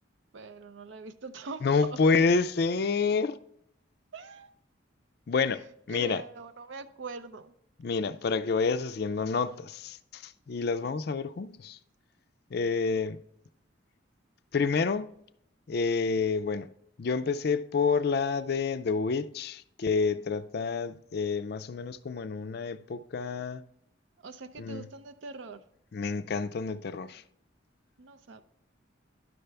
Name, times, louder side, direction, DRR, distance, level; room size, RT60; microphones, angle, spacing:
voice 1, 0.3-2.0 4.1-4.5 5.9-7.5 24.2-25.6 28.0-28.4, right 4 dB, 70° right, 0.5 m, -43 dB
voice 2, 1.6-3.4 5.3-6.2 7.8-11.8 12.5-13.2 14.5-15.1 15.7-16.7 17.0-23.6 24.6-24.8 25.9-27.2, left 4 dB, 50° left, 0.4 m, -28 dB
10.5 x 6.7 x 3.3 m
head